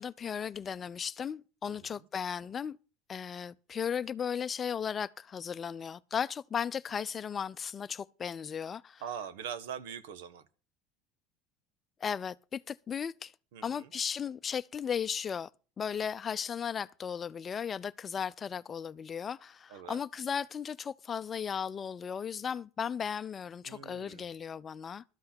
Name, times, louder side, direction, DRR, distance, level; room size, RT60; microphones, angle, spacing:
voice 1, 0.0-2.8 3.1-9.0 12.0-13.3 13.6-15.5 15.8-25.0, left 7 dB, 35° left, 0.6 m, -36 dB
voice 2, 1.7-2.1 9.0-10.4 13.5-13.9 19.7-20.0 23.6-24.3, right 8 dB, 75° right, 1.2 m, -43 dB
13.0 x 5.6 x 8.6 m
hypercardioid pair, 80°, 0 cm